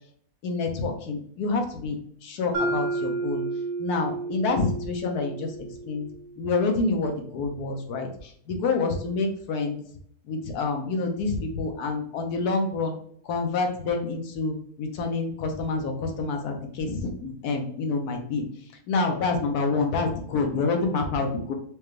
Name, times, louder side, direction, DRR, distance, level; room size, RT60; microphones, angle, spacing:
voice 1, 0.4-3.4 3.8-5.5 5.8-6.1 6.4-9.8 10.3-13.0 13.2-18.4 18.9-21.5, left 3 dB, 80° left, 4 dB, 1.3 m, -27 dB
Mallet percussion, 2.5-6.6, right 3 dB, 60° right, 1.2 m, -31 dB
5.0 x 2.2 x 3.2 m, 0.63 s
omnidirectional pair, 1.6 m